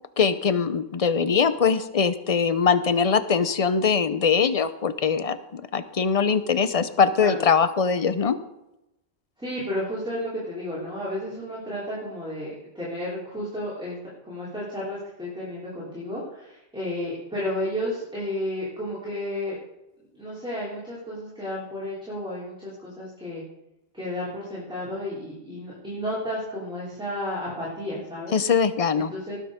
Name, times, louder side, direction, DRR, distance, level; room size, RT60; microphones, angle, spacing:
voice 1, 0.2-8.4 28.3-29.1, left 6 dB, 40° left, 13 dB, 0.6 m, -22 dB
voice 2, 9.4-14.0 14.2-19.6 20.1-23.4 23.9-28.4 29.1-29.3, left 1 dB, 5° right, -8 dB, 3.5 m, -32 dB
19.0 x 6.5 x 5.0 m, 0.91 s
omnidirectional pair, 1.1 m